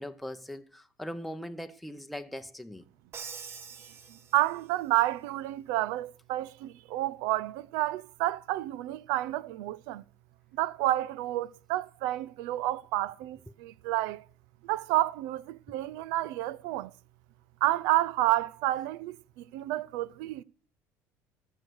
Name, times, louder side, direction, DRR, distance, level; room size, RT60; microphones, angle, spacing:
voice 1, 0.0-2.8, equal, ahead, 0.7 m, -40 dB
Crash cymbal, 3.1-4.9, right 6 dB, 40° right, 1.2 m, -45 dB
voice 2, 4.1-10.0 10.5-14.2 14.6-16.9 17.6-20.4, right 16 dB, 85° right, 0.5 m, -30 dB
14.0 x 6.7 x 6.2 m
cardioid pair, 110°, 6 cm